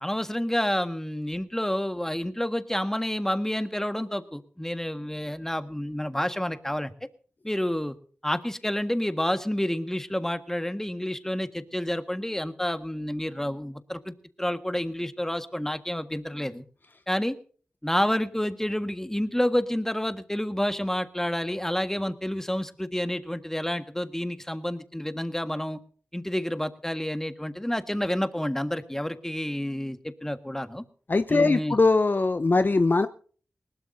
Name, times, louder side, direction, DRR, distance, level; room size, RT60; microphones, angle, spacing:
voice 1, 0.0-6.9 7.4-8.0 8.2-16.6 17.1-17.4 17.8-25.8 26.1-30.8 31.3-31.8, left 1 dB, 10° left, 9 dB, 1.6 m, -29 dB
voice 2, 31.1-33.1, left 3 dB, 45° left, 11 dB, 0.7 m, -21 dB
20.5 x 19.0 x 2.7 m, 0.43 s
cardioid pair, 45°, 5 cm